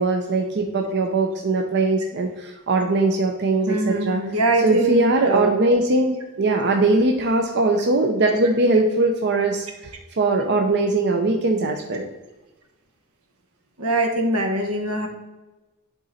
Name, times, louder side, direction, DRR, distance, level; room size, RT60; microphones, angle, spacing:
voice 1, 0.0-4.2 4.6-12.1, right 2 dB, 55° right, 2 dB, 0.7 m, -21 dB
voice 2, 3.7-5.5 6.7-6.8 13.8-15.1, right 2 dB, 85° right, 3 dB, 1.4 m, -22 dB
11.0 x 3.9 x 4.2 m, 1.1 s
head